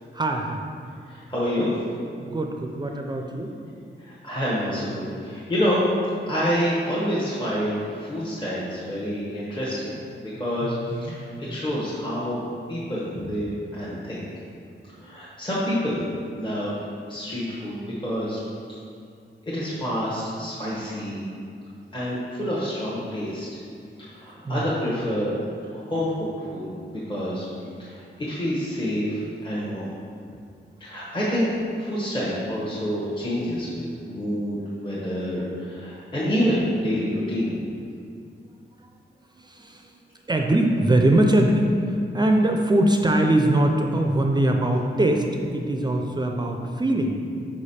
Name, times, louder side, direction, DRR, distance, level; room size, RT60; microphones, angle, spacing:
voice 1, 0.1-0.6 2.2-3.5 10.6-11.2 14.9-15.0 24.4-24.6 39.4-39.9 40.3-45.3 45.5-47.2, right 1 dB, 20° right, 2 dB, 0.4 m, -22 dB
voice 2, 1.0-1.8 4.0-5.8 6.3-14.3 15.0-16.0 16.4-16.7 17.1-18.4 19.5-21.2 21.9-23.5 24.1-25.3 25.7-26.1 26.4-27.4 27.8-29.9 30.8-31.5 31.8-37.5, equal, 25° left, -8 dB, 1.0 m, -28 dB
5.3 x 5.0 x 4.2 m, 2.3 s
wide cardioid pair, 150°, 19 cm